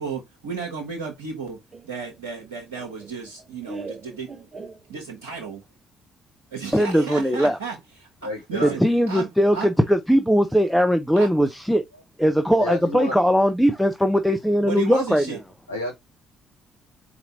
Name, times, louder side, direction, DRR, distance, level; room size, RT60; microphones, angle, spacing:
voice 1, 0.0-1.6 1.8-4.5 4.9-5.6 6.5-9.7 11.2-11.3 14.6-15.4, right 5 dB, 75° right, 0.8 m, -33 dB
Laughter, 1.7-5.4, right 3 dB, 35° right, 0.8 m, -41 dB
voice 2, 6.7-7.6 8.6-11.8 12.2-15.2, equal, ahead, 0.6 m, -20 dB
voice 3, 8.2-8.7 12.6-13.1 15.7-15.9, left 1 dB, 85° left, 0.9 m, -30 dB
4.3 x 2.6 x 4.0 m
figure-of-eight pair, 45°, 0 cm